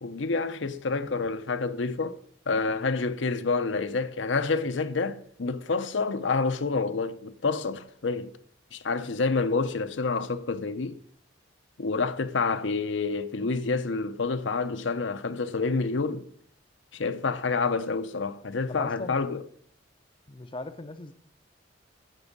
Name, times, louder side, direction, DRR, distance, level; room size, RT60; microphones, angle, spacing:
voice 1, 0.0-2.2 2.5-8.3 8.7-11.0 11.8-16.3 16.9-19.4, left 4 dB, 75° left, 0.7 m, -28 dB
voice 2, 18.7-19.2 20.3-21.1, left 2 dB, 25° left, 0.5 m, -38 dB
15.5 x 6.1 x 5.3 m
head